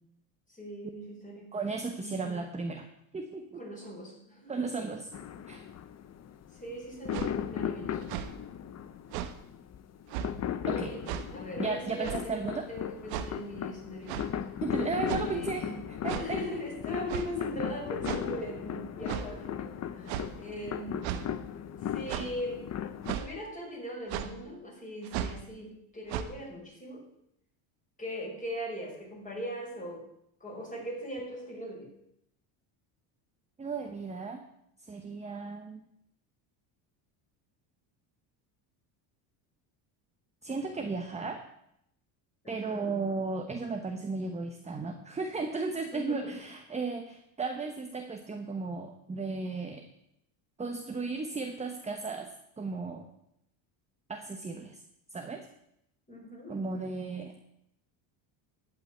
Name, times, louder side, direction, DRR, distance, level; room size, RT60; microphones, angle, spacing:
voice 1, 0.5-1.4 2.0-2.2 3.6-4.9 6.5-8.2 10.6-14.4 15.2-15.8 16.1-21.1 21.9-22.7 23.2-27.0 28.0-30.1 30.4-31.9 42.4-42.9 45.9-46.3 56.1-56.6, equal, 15° left, -2 dB, 5.5 m, -40 dB
voice 2, 1.5-2.8 3.1-3.6 4.5-5.1 5.5-5.6 10.7-11.0 11.6-12.7 14.6-16.4 33.6-34.4 34.9-35.8 40.4-41.4 42.5-49.8 50.6-52.3 52.6-53.1 54.1-54.8 55.1-55.5 56.5-57.3, right 4 dB, 15° right, 5 dB, 1.0 m, -35 dB
sound 1, 5.1-23.2, left 9 dB, 35° left, 0.7 m, -37 dB
sound 2, 7.1-7.3 8.0-8.3 9.1-9.3 10.1-10.3 11.0-11.3 12.0-12.3 13.1-13.3 14.1-14.3 15.1-15.4 16.1-16.3 17.1-17.3 18.0-18.3 19.0-19.3 20.1-20.3 21.0-21.2 22.1-22.3 23.0-23.3 24.1-24.3 25.0-25.4 26.1-26.2, right 10 dB, 90° right, 1.3 m, -35 dB
12.0 x 5.9 x 9.2 m, 0.78 s
cardioid pair, 120°, 48 cm